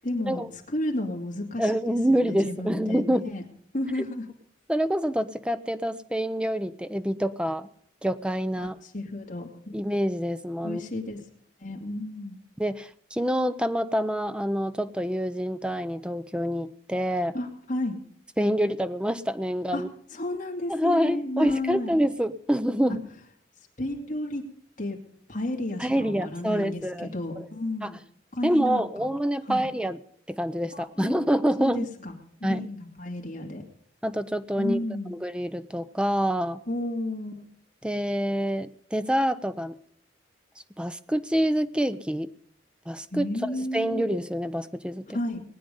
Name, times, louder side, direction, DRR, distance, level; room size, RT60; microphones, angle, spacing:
voice 1, 0.0-1.7 2.1-3.4 3.7-4.3 8.6-9.7 10.6-11.2 11.6-12.4 17.3-18.0 19.7-19.8 20.1-22.0 22.9-23.0 23.8-24.5 24.8-25.0 25.3-28.0 28.3-29.1 29.5-29.7 30.7-31.2 31.6-32.2 32.5-33.6 34.6-35.2 36.7-37.4 43.1-44.0 45.1-45.4, left 1 dB, 40° left, 1 dB, 2.6 m, -32 dB
voice 2, 1.6-3.3 4.7-7.7 8.0-8.8 9.7-10.8 12.6-17.3 18.4-19.9 20.7-23.0 25.8-27.4 27.8-27.9 28.4-30.0 30.3-31.9 32.4-32.7 34.0-34.8 35.1-36.6 37.8-39.8 40.8-42.3 42.9-45.1, equal, 5° right, 12 dB, 0.6 m, -26 dB
20.5 x 9.5 x 5.4 m, 0.63 s
head